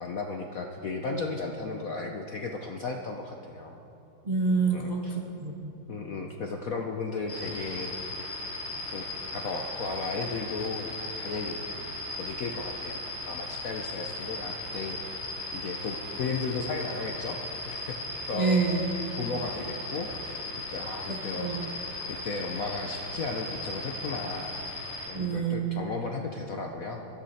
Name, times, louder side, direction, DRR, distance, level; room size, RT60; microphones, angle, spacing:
voice 1, 0.0-3.8 4.7-5.2 5.9-8.0 8.9-9.1 9.3-11.6 12.2-13.0 13.3-15.0 15.5-18.6 19.2-21.8 22.1-24.6 25.1-27.1, left 3 dB, 60° left, 2 dB, 1.0 m, -35 dB
voice 2, 4.2-5.7 18.3-18.9 21.1-21.7 25.1-25.8, right 4 dB, 30° right, 0 dB, 0.8 m, -28 dB
sound 1, 7.3-25.1, left 2 dB, 90° left, 5.0 m, -37 dB
20.5 x 14.0 x 4.2 m, 2.9 s
omnidirectional pair, 2.3 m